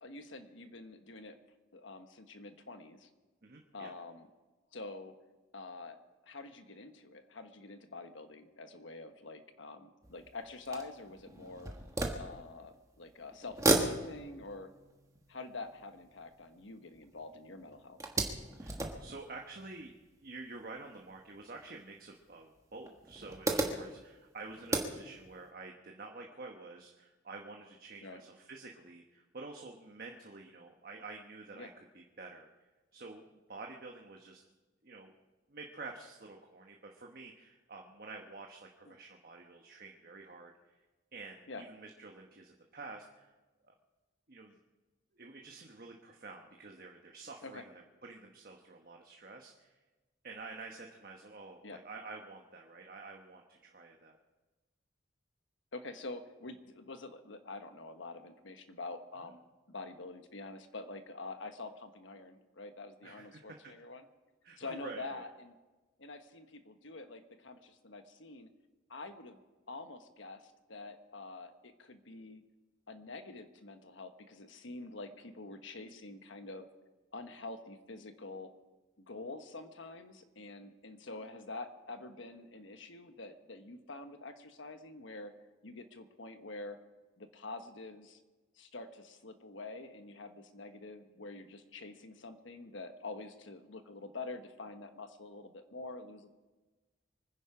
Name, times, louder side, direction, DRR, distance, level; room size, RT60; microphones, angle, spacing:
voice 1, 0.0-1.4 1.7-3.1 3.7-4.3 4.7-5.1 5.5-6.0 6.2-11.7 12.2-14.7 15.3-18.0 23.6-23.8 28.0-28.2 31.5-31.7 38.9-39.0 41.5-41.6 47.4-47.6 51.6-51.8 55.7-59.4 59.7-64.0 64.6-65.5 66.0-68.5 68.9-69.4 69.7-72.4 72.9-76.7 77.1-78.5 79.0-85.3 85.6-86.8 87.2-88.2 88.6-96.3, left 3 dB, 75° left, 8 dB, 1.3 m, -46 dB
voice 2, 3.4-3.9 18.6-34.4 34.8-35.1 35.5-40.8 41.1-43.3 43.6-43.7 44.3-44.6 45.1-49.8 50.2-54.2 59.2-59.3 63.0-63.6 64.4-65.2, right 3 dB, 50° right, 1 dB, 1.2 m, -49 dB
sound 1, 10.0-13.0 13.3-17.2 17.6-20.3 21.1-21.2 21.6-21.7 22.8-25.4, right 2 dB, 15° right, 1.3 m, -36 dB
24.5 x 10.0 x 4.9 m, 1.2 s
head